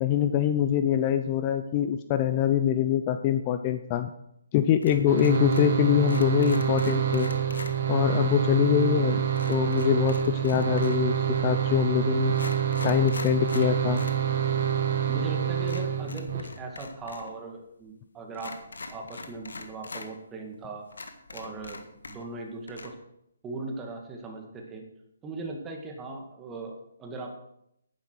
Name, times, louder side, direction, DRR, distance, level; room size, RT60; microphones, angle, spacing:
voice 1, 0.0-4.1 4.5-7.3 7.9-9.2 9.5-12.4 12.8-14.0, left 10 dB, 30° left, 9 dB, 0.6 m, -24 dB
sound 1, 4.8-5.8 6.0-7.7 9.4-11.1 11.8-11.9 12.3-14.2 14.5-14.6 15.6-17.3 17.6-17.7 18.3-20.1 20.5-20.6 20.9-22.4 22.7-22.9, left 3 dB, 80° left, 1.6 m, -42 dB
sound 2, 5.1-16.4, right 9 dB, 50° right, 1.6 m, -27 dB
voice 2, 15.1-18.6 18.9-20.9 21.3-21.8 22.1-22.9 23.4-24.9 25.2-27.3, right 2 dB, 15° right, 1 dB, 2.0 m, -38 dB
11.0 x 10.0 x 4.7 m, 0.76 s
hypercardioid pair, 145°, 0 cm